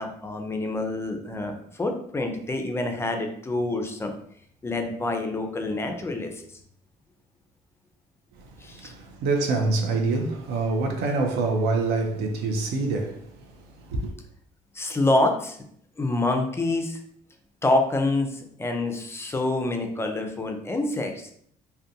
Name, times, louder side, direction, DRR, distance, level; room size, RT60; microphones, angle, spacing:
voice 1, 0.0-4.1 4.6-6.4 8.6-8.9 14.7-15.6 16.0-17.0 17.6-21.3, left 2 dB, 15° left, 0.4 m, -27 dB
voice 2, 8.4-14.1, right 3 dB, 75° right, 0.5 m, -26 dB
2.5 x 2.2 x 2.6 m
cardioid pair, 110°, 17 cm